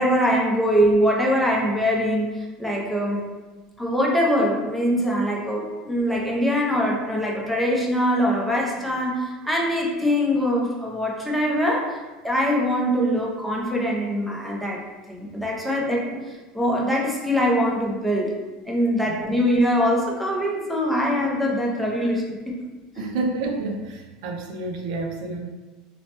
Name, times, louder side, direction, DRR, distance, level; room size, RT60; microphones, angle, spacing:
voice 1, 0.0-3.2 3.8-12.0 12.2-14.8 15.1-18.4 18.6-22.6 23.0-23.1, equal, ahead, -3 dB, 0.6 m, -23 dB
voice 2, 23.0-25.4, right 3 dB, 75° right, 2 dB, 0.4 m, -29 dB
2.9 x 2.1 x 2.9 m, 1.2 s
supercardioid pair, 110°, 4 cm